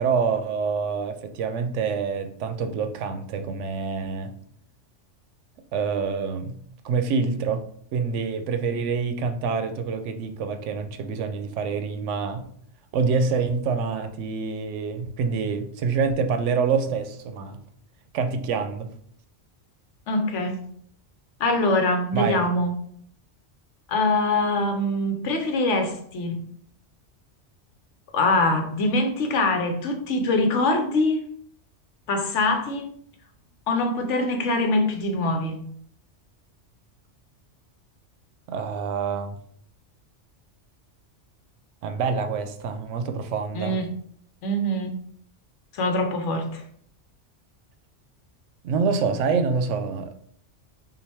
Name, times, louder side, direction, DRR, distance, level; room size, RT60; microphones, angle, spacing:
voice 1, 0.0-4.3 5.7-6.6 6.8-7.6 7.9-12.5 12.9-17.6 18.1-18.9 22.1-22.4 38.5-39.3 41.8-43.8 48.6-50.1, right 5 dB, 80° right, 0.9 m, -26 dB
voice 2, 20.1-20.6 21.4-22.7 23.9-26.4 28.1-31.2 32.1-32.9 33.7-35.6 43.5-43.9 44.4-45.0 45.7-46.6, left 2 dB, 80° left, 1.1 m, -23 dB
5.6 x 2.5 x 3.4 m
omnidirectional pair, 1.2 m